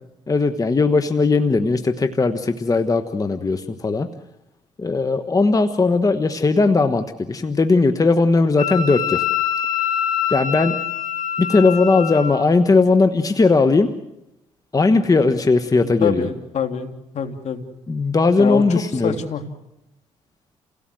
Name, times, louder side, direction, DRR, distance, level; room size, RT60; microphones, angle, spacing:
voice 1, 0.3-4.1 4.8-9.2 10.3-10.8 11.4-13.9 14.7-16.3 17.9-19.2, left 3 dB, 25° left, 7 dB, 1.4 m, -18 dB
Wind instrument woodwind instrument, 8.6-12.3, left 9 dB, 80° left, 4.5 m, -24 dB
voice 2, 15.8-17.6 18.4-19.4, left 7 dB, 60° left, 6 dB, 3.0 m, -26 dB
29.5 x 17.5 x 7.8 m, 0.91 s
supercardioid pair, 70°, 13 cm